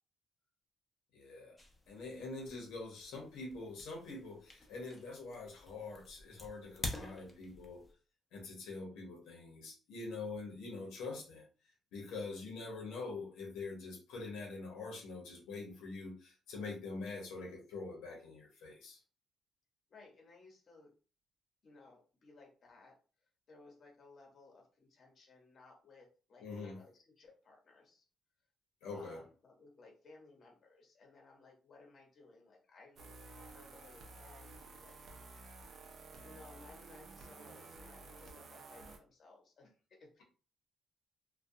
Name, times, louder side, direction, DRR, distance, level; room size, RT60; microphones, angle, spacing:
voice 1, 1.1-1.6 1.9-7.8 8.3-11.4 11.9-19.0 26.4-26.8 28.8-29.2, left 3 dB, 90° left, -1 dB, 0.8 m, -45 dB
sound 1, 1.6-7.9, left 2 dB, 25° left, 0.7 m, -48 dB
voice 2, 19.9-20.9 21.6-22.9 23.5-28.0 28.9-33.0 33.3-35.0 36.2-40.2, left 3 dB, 50° left, 1 dB, 0.9 m, -60 dB
sound 2, 33.0-39.0, right 3 dB, 55° right, 0.6 m, -53 dB
2.3 x 2.2 x 2.6 m, 0.37 s
cardioid pair, 90°, 0 cm